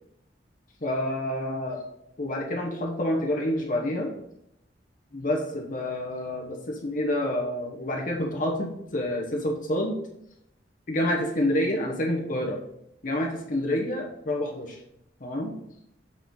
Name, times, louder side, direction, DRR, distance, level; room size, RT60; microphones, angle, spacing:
voice 1, 0.8-1.8 2.2-4.1 5.1-10.0 10.9-12.6 13.0-14.8 15.2-15.5, left 1 dB, 45° left, 1 dB, 1.0 m, -28 dB
7.4 x 4.4 x 3.8 m, 0.79 s
head